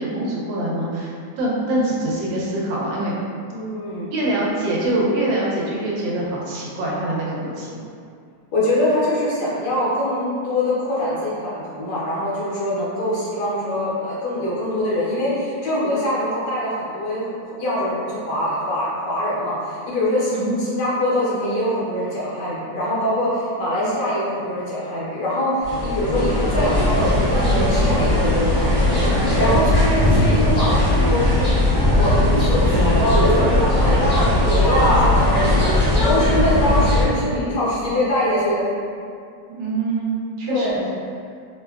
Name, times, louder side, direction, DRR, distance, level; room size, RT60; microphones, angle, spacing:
voice 1, 0.0-3.1 4.1-7.8 20.3-20.6 29.4-29.6 35.0-35.2 39.5-40.9, right 1 dB, 80° right, -5 dB, 1.3 m, -24 dB
voice 2, 3.5-4.1 8.5-17.2 17.6-31.2 31.7-35.6 36.0-38.7 40.5-40.8, left 1 dB, 70° left, -8 dB, 1.2 m, -23 dB
sound 1, 25.6-37.0, left 1 dB, 15° right, 0.8 m, -18 dB
3.2 x 2.2 x 2.2 m, 2.3 s
omnidirectional pair, 2.0 m